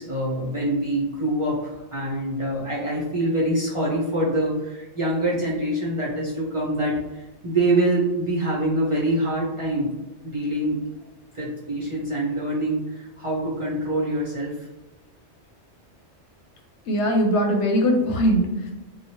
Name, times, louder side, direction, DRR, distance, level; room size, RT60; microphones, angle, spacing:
voice 1, 0.0-9.9 10.2-10.8 11.3-14.6, right 1 dB, 40° right, -6 dB, 0.5 m, -25 dB
voice 2, 16.9-18.7, equal, 80° left, 2 dB, 0.9 m, -21 dB
2.9 x 2.2 x 2.8 m, 1.0 s
omnidirectional pair, 1.2 m